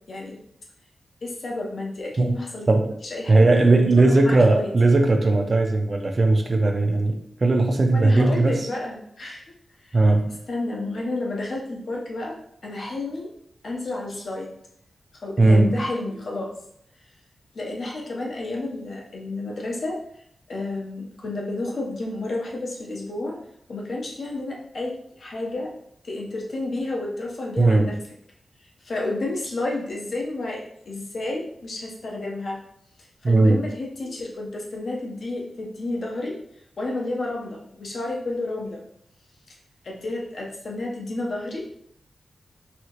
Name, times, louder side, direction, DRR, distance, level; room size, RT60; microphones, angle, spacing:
voice 1, 0.1-0.4 1.2-2.7 3.1-4.7 7.9-9.4 9.9-10.0 10.5-12.4 12.6-13.3 13.6-14.5 15.2-16.5 17.5-20.0 20.5-23.4 23.7-25.7 26.0-28.0 28.8-32.6 33.2-36.4 36.8-38.8 39.8-41.6, left 2 dB, 60° left, -2 dB, 0.9 m, -31 dB
voice 2, 3.3-7.1 7.4-8.7 9.9-10.4 15.4-15.8 27.6-27.9 33.2-33.7, right 2 dB, 40° right, 4 dB, 0.5 m, -18 dB
4.2 x 2.8 x 3.0 m, 0.71 s
wide cardioid pair, 115°, 0 cm